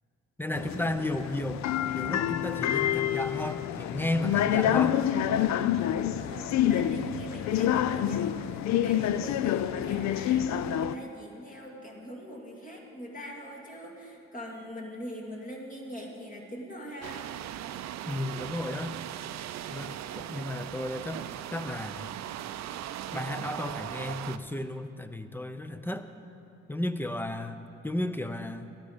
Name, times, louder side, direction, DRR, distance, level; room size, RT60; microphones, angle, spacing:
voice 1, 0.4-1.6 1.9-5.0 18.1-19.0 19.7-22.1 23.1-26.1 26.7-28.7, left 1 dB, 5° left, 10 dB, 0.6 m, -33 dB
sound 1, 0.5-10.9, left 10 dB, 65° left, 0.5 m, -27 dB
voice 2, 6.0-17.2, equal, 25° left, -1 dB, 2.4 m, -43 dB
sound 2, 17.0-24.4, right 11 dB, 65° right, 0.5 m, -39 dB
13.5 x 11.5 x 5.1 m, 2.7 s
cardioid pair, 90°, 30 cm